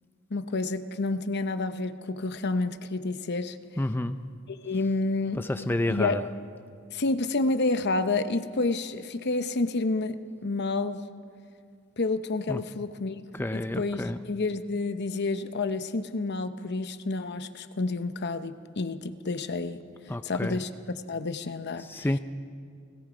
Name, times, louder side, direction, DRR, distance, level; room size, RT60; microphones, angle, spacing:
voice 1, 0.3-3.6 4.6-5.5 5.9-6.3 6.9-11.0 12.0-13.2 13.5-19.8 20.2-20.7 21.1-22.1, left 3 dB, 55° left, 11 dB, 0.8 m, -29 dB
voice 2, 3.8-4.2 5.4-6.2 12.5-12.6 13.3-14.2 20.1-20.6 21.8-22.2, left 1 dB, 10° left, 9 dB, 0.4 m, -29 dB
29.5 x 18.0 x 5.1 m, 2.2 s
head